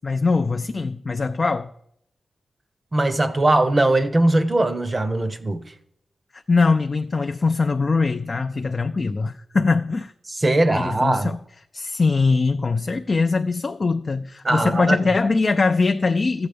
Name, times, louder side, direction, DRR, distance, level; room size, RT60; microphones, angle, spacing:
voice 1, 0.0-1.7 6.3-10.1 10.7-11.4 11.7-16.5, left 4 dB, 40° left, 0.4 m, -22 dB
voice 2, 2.9-5.6 10.3-11.3 14.4-15.0, right 2 dB, 25° right, 0.7 m, -20 dB
13.0 x 7.9 x 5.1 m
wide cardioid pair, 120°, 0 cm